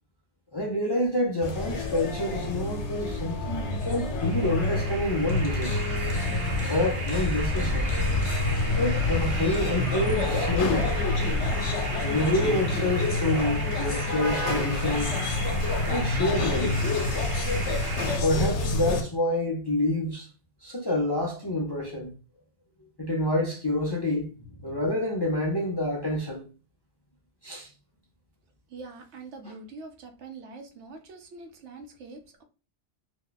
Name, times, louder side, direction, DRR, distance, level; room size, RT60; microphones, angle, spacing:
voice 1, 0.5-5.7 6.7-7.9 8.8-10.9 12.0-15.2 15.9-16.9 18.2-20.3 20.6-22.1 23.0-24.3 24.6-26.4 27.4-27.7 29.5-29.6, left 1 dB, 35° left, 0.4 m, -28 dB
sound 1, 1.4-19.0, left 2 dB, 80° left, 1.0 m, -27 dB
sound 2, 4.2-18.2, right 3 dB, 50° right, 0.8 m, -37 dB
voice 2, 28.7-32.4, right 3 dB, 80° right, 1.0 m, -44 dB
2.9 x 2.2 x 3.8 m
omnidirectional pair, 1.2 m